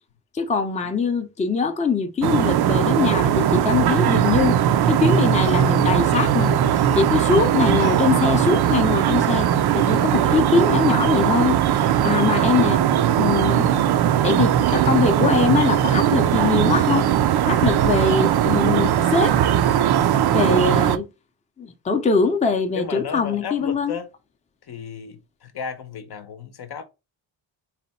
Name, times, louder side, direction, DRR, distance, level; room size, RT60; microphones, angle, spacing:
voice 1, 0.3-4.6 4.9-6.6 6.9-9.5 9.7-12.8 13.2-13.7 14.2-17.1 17.4-19.4 20.3-21.1 21.6-23.9, left 5 dB, 15° left, 0.5 m, -22 dB
sound 1, 2.2-21.0, right 10 dB, 55° right, 0.5 m, -19 dB
voice 2, 22.7-24.1 24.7-26.8, left 6 dB, 55° left, 0.7 m, -33 dB
4.1 x 2.2 x 4.1 m
cardioid pair, 115°, 47 cm